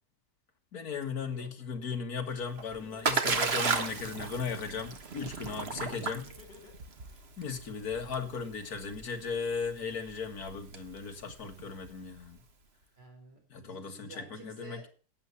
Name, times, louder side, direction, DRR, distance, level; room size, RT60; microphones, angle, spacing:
voice 1, 0.7-6.3 7.4-12.4 13.5-14.8, left 5 dB, 60° left, 2.2 m, -37 dB
Splash splatter, 2.3-12.2, right 4 dB, 40° right, 1.3 m, -35 dB
Laughter, 2.8-4.3 6.0-7.2, left 5 dB, 80° left, 2.8 m, -54 dB
voice 2, 4.0-4.3 13.0-14.9, right 3 dB, 75° right, 5.2 m, -51 dB
12.0 x 8.4 x 7.0 m
omnidirectional pair, 1.9 m